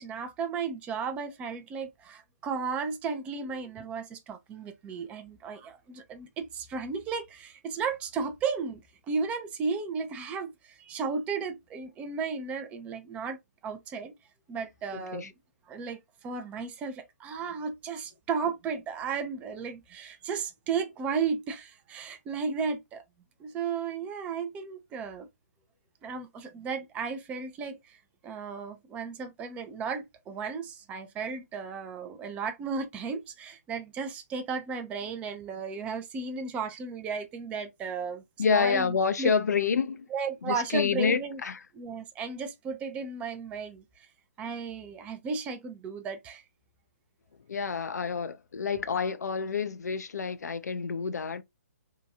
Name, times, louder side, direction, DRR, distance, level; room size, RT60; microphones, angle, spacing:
voice 1, 0.0-8.8 9.1-14.1 14.5-15.3 15.7-23.0 23.4-25.3 26.0-39.3 40.1-41.4 41.7-44.1 44.4-46.4, right 5 dB, 15° right, 0.4 m, -34 dB
voice 2, 14.9-15.3 38.4-40.1 40.5-41.6 47.5-51.4, left 5 dB, 80° left, 0.4 m, -28 dB
2.7 x 2.2 x 2.5 m
hypercardioid pair, 140°, 9 cm